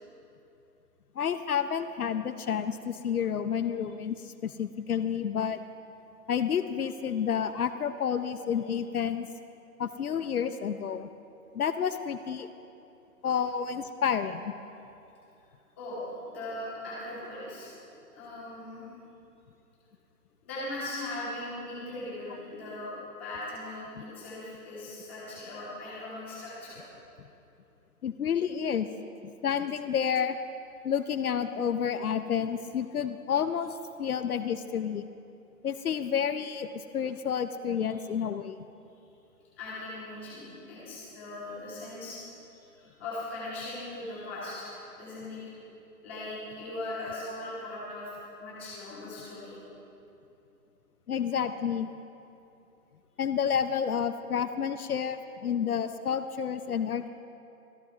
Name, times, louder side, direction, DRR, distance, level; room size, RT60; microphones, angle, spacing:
voice 1, 1.2-5.6 6.3-9.3 9.8-11.1 11.5-12.5 13.2-14.5 28.0-28.9 29.2-30.4 30.8-35.0 35.6-38.6 51.1-51.9 53.2-57.1, left 8 dB, 65° left, 11 dB, 0.6 m, -30 dB
voice 2, 15.8-17.7 18.1-18.9 20.4-22.9 23.2-26.8 39.6-42.2 42.5-45.4 46.0-49.5, left 2 dB, 10° left, -9 dB, 1.3 m, -39 dB
25.0 x 13.5 x 2.4 m, 2.8 s
hypercardioid pair, 180°, 47 cm